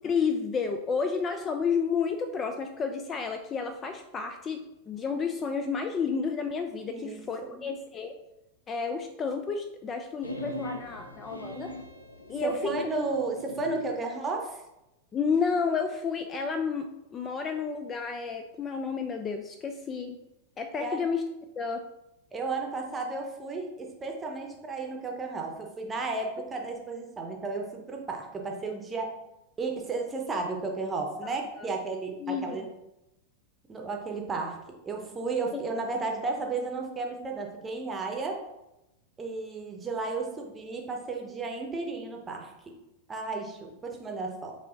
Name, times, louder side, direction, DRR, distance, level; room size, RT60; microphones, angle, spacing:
voice 1, 0.0-4.6 4.9-8.1 8.7-11.7 12.3-12.7 15.1-20.2 20.6-21.2 21.6-21.8 31.2-31.3 31.6-31.7 32.2-32.6 35.5-35.6, left 5 dB, 25° left, 7 dB, 0.3 m, -31 dB
voice 2, 6.9-7.2 7.5-7.7 12.4-14.6 20.8-21.0 22.3-29.2 29.6-32.7 33.7-34.6 34.8-38.4 39.2-42.8 43.1-44.6, right 3 dB, 15° right, 1 dB, 0.8 m, -33 dB
sound 1, 10.2-14.0, left 1 dB, 85° left, 0.5 m, -41 dB
4.7 x 2.8 x 3.8 m, 0.92 s
figure-of-eight pair, 90°, 0 cm